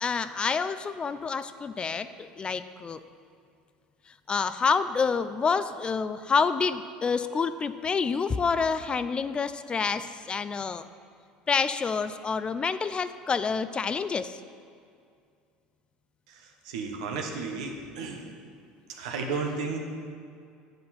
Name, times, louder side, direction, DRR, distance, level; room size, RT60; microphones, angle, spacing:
voice 1, 0.0-3.0 4.1-10.9 11.5-14.4, left 5 dB, 30° left, 13 dB, 0.4 m, -28 dB
voice 2, 16.3-18.2 18.9-19.8, right 4 dB, 80° right, 2 dB, 1.1 m, -33 dB
9.1 x 7.9 x 4.2 m, 2.3 s
hypercardioid pair, 85°, 3 cm